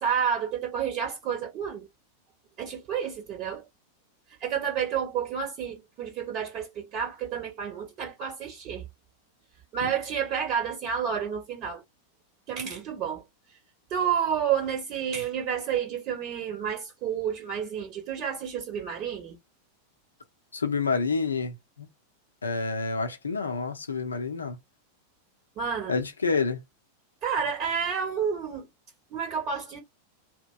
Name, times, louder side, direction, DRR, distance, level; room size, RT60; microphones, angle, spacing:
voice 1, 0.0-1.9 2.6-3.6 4.4-8.8 9.7-11.8 12.5-13.2 13.9-19.4 25.6-25.9 27.2-28.7 29.1-29.8, right 7 dB, 35° right, 0.8 m, -30 dB
voice 2, 20.5-21.9 22.4-24.6 25.9-26.6, left 4 dB, 75° left, 0.6 m, -28 dB
2.9 x 2.0 x 2.3 m
figure-of-eight pair, 90°, 0 cm